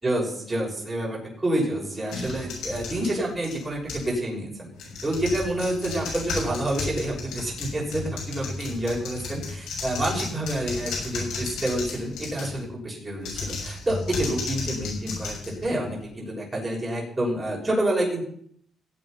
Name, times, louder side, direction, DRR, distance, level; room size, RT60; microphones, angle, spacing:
voice 1, 0.0-4.7 5.0-18.2, right 1 dB, 20° right, -3 dB, 6.2 m, -28 dB
sound 1, 2.1-4.2 4.7-12.7 13.2-16.1, left 3 dB, 90° left, 6.6 m, -34 dB
17.0 x 8.6 x 5.8 m, 0.65 s
cardioid pair, 90°, 0 cm